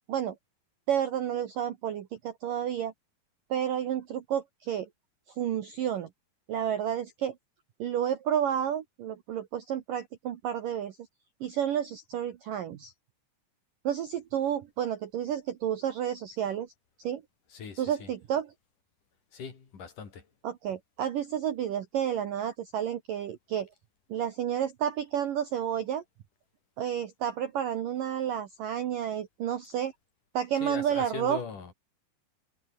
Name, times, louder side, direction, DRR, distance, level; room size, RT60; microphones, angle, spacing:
voice 1, 0.9-2.9 3.5-4.9 5.4-6.1 6.5-7.4 7.8-11.0 11.4-12.9 13.8-16.7 17.0-17.2 17.8-18.5 20.4-23.7 24.1-26.0 26.8-29.9 30.3-31.4, right 9 dB, 75° right, 2.0 m, -31 dB
voice 2, 17.5-18.1 19.3-20.3 30.6-31.7, left 6 dB, 40° left, 5.3 m, -40 dB
omnidirectional pair, 6.0 m